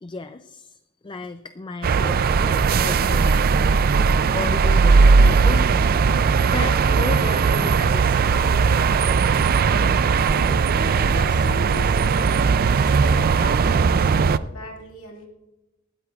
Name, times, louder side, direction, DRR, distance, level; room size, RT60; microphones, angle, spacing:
voice 1, 0.0-3.4 4.1-8.3, left 3 dB, 20° left, 11 dB, 0.4 m, -34 dB
sound 1, 1.8-14.4, right 5 dB, 45° right, 0.4 m, -18 dB
voice 2, 10.3-12.4 12.7-15.3, left 1 dB, 85° left, 1 dB, 2.0 m, -38 dB
19.5 x 14.5 x 2.4 m, 1.0 s
head